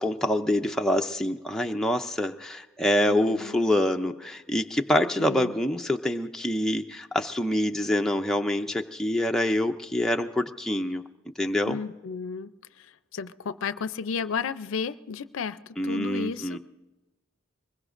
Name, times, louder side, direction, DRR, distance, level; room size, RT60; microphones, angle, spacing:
voice 1, 0.0-11.0 11.4-11.8 15.8-16.6, left 1 dB, 5° left, 3 dB, 0.4 m, -26 dB
voice 2, 3.1-3.6 5.2-5.5 11.7-12.5 12.8-12.9 13.1-16.6, left 5 dB, 70° left, 14 dB, 0.4 m, -33 dB
24.0 x 21.0 x 2.5 m, 1.1 s
head